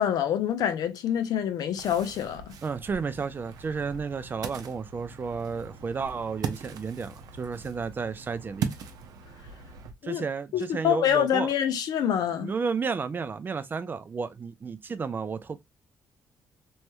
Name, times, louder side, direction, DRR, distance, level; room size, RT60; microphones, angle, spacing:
voice 1, 0.0-2.5 10.0-10.2 10.5-12.5, left 9 dB, 75° left, 0.6 m, -26 dB
Ocean, 1.8-9.9, right 7 dB, 75° right, 0.6 m, -39 dB
voice 2, 2.6-8.7 10.0-11.5 12.4-15.6, right 5 dB, 30° right, 0.4 m, -32 dB
3.1 x 2.2 x 2.9 m
cardioid pair, 110°, 7 cm